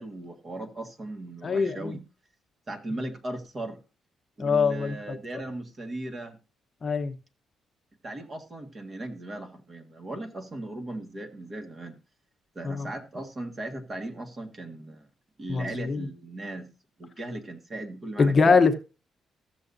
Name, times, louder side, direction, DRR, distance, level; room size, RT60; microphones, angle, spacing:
voice 1, 0.0-2.0 2.7-3.8 4.4-6.4 8.0-12.0 12.5-15.1 15.4-16.7 17.0-18.6, right 1 dB, 35° right, 1.6 m, -37 dB
voice 2, 1.4-2.0 4.4-5.0 6.8-7.1 12.6-12.9 15.5-16.1 18.2-18.7, left 4 dB, 40° left, 0.9 m, -23 dB
14.5 x 6.9 x 2.6 m
cardioid pair, 90°, 0 cm